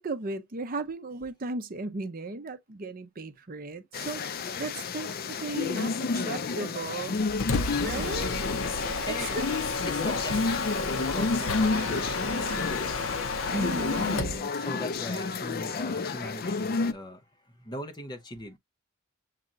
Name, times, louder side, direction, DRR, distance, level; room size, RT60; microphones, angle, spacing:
voice 1, 0.0-4.3 4.6-7.2 7.8-8.4 9.1-9.5 13.5-14.5, right 2 dB, 40° right, 0.6 m, -36 dB
sound 1, 3.9-16.9, left 4 dB, 45° left, 0.4 m, -31 dB
Mechanisms, 7.1-14.4, left 3 dB, 70° left, 0.7 m, -32 dB
voice 2, 7.5-8.0 9.0-9.4 9.9-10.6 11.0-12.7 14.6-17.2 17.6-18.6, equal, 20° left, 0.8 m, -40 dB
7.5 x 2.8 x 2.5 m
head